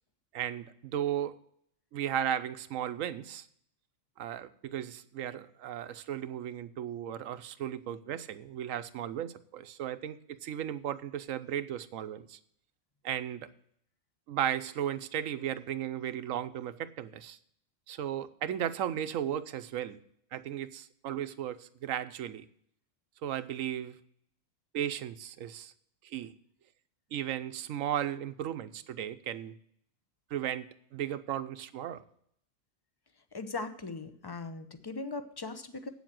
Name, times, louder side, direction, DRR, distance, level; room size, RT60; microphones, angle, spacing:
voice 1, 0.3-1.4 1.9-3.5 4.2-12.4 13.0-13.5 14.3-17.4 17.9-20.0 20.3-22.4 23.2-24.0 24.7-25.7 26.0-26.3 27.1-29.6 30.3-32.0, right 10 dB, 85° right, 13 dB, 1.1 m, -35 dB
voice 2, 33.3-35.9, left 3 dB, 25° left, 10 dB, 0.6 m, -39 dB
8.4 x 7.2 x 7.5 m, 0.67 s
omnidirectional pair, 1.3 m